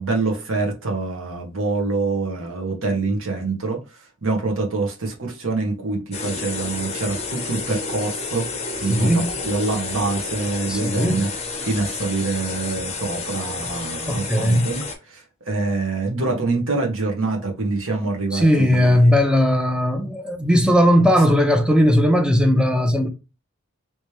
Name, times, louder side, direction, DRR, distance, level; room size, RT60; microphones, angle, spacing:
voice 1, 0.0-3.8 4.2-9.1 9.4-11.3 11.6-14.8 15.1-19.1, right 3 dB, 70° right, 1.3 m, -25 dB
sound 1, 6.1-15.0, left 4 dB, 30° left, 0.8 m, -30 dB
voice 2, 8.9-9.3 10.7-11.2 14.1-14.7 18.3-23.1, equal, 5° right, 0.6 m, -17 dB
3.3 x 3.2 x 2.9 m
head